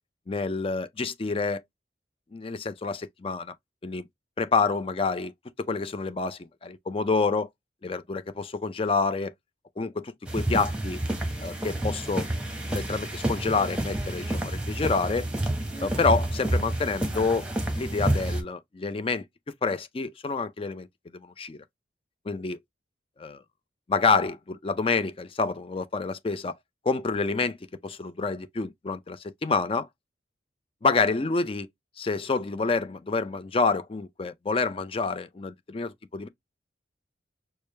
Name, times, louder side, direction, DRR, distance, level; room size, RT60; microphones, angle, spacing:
voice 1, 0.3-1.6 2.3-3.5 3.8-4.1 4.4-5.3 5.6-7.5 7.8-9.3 9.8-11.0 11.4-12.3 12.7-15.3 15.8-17.5 17.8-19.2 19.6-20.9 21.1-21.6 22.3-22.6 23.2-23.4 23.9-26.6 26.8-27.6 27.8-29.9 30.8-31.7 32.0-36.3, left 4 dB, 30° left, 0.4 m, -28 dB
sound 1, 10.3-18.4, right 1 dB, 5° right, 1.0 m, -29 dB
4.8 x 2.2 x 3.2 m
head